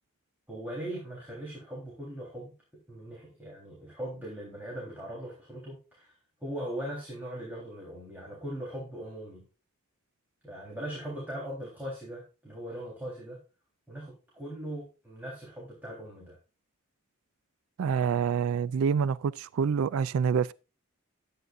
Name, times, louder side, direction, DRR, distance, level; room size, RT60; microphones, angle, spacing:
voice 1, 0.5-2.5 2.9-9.4 10.4-13.4 13.9-16.4, right 1 dB, 10° right, 3.6 m, -40 dB
voice 2, 17.8-20.5, right 6 dB, 70° right, 0.3 m, -27 dB
12.5 x 9.2 x 2.5 m
head